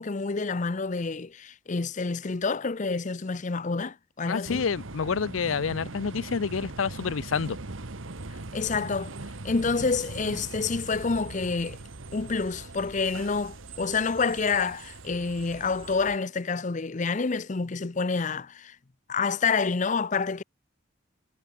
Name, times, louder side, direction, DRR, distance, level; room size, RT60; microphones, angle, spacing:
voice 1, 0.0-4.7 8.5-9.1 9.4-11.8 12.1-18.8 19.1-20.4, left 4 dB, 40° left, 0.6 m, -28 dB
voice 2, 4.3-7.6, left 6 dB, 90° left, 0.6 m, -28 dB
sound 1, 4.4-16.2, right 2 dB, 85° right, 1.5 m, -41 dB
head